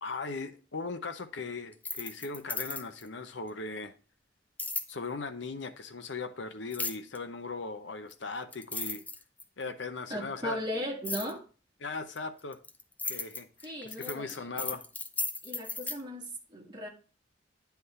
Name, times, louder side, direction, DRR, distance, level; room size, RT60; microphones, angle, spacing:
voice 1, 0.0-3.9 4.9-9.0 9.6-10.6 11.8-12.6 13.0-14.8, left 3 dB, 70° left, 0.8 m, -38 dB
sound 1, 1.7-3.1 4.6-4.9 6.7-7.2 8.1-8.2 8.5-9.6 11.0-11.3 12.2-16.0, left 3 dB, 10° left, 0.6 m, -35 dB
voice 2, 10.1-11.4 13.6-14.7 15.4-16.9, equal, 25° right, 1.9 m, -37 dB
9.6 x 3.5 x 5.6 m
head